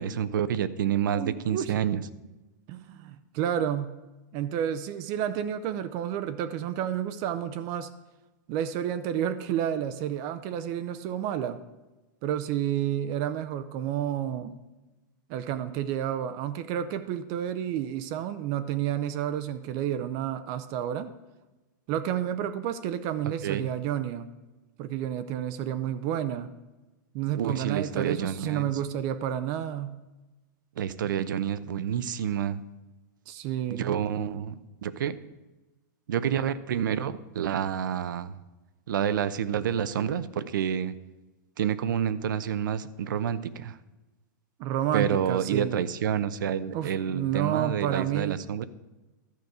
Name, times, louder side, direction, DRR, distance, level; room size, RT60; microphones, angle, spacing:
voice 1, 0.0-2.0 23.4-23.7 27.4-28.7 30.8-32.6 33.7-35.2 36.1-38.4 38.9-40.9 41.6-43.8 44.9-48.6, right 9 dB, 80° right, 15 dB, 0.7 m, -28 dB
voice 2, 1.1-1.7 2.7-4.0 4.3-7.9 8.5-11.6 12.2-14.5 15.3-21.1 21.9-24.3 24.8-26.5 27.1-30.0 33.3-34.0 44.6-45.8 46.7-48.4, right 10 dB, 40° right, 11 dB, 0.6 m, -30 dB
12.0 x 5.2 x 8.0 m, 1.1 s
supercardioid pair, 150°, 10 cm